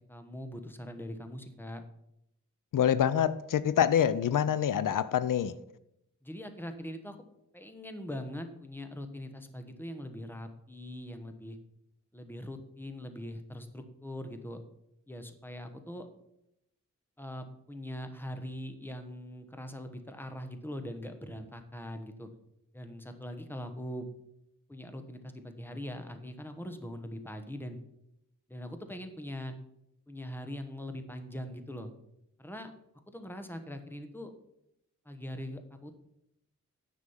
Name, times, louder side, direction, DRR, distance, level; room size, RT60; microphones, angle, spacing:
voice 1, 0.1-1.8 6.2-7.2 7.5-11.6 12.1-14.6 15.1-16.1 17.2-22.3 22.7-24.1 24.7-27.8 28.5-29.5 30.1-31.9 32.4-32.7 33.1-34.3 35.0-35.9, equal, 5° left, 7 dB, 1.1 m, -42 dB
voice 2, 2.7-5.5, left 9 dB, 90° left, 16 dB, 0.5 m, -26 dB
9.7 x 6.2 x 5.6 m, 0.80 s
wide cardioid pair, 110°, 31 cm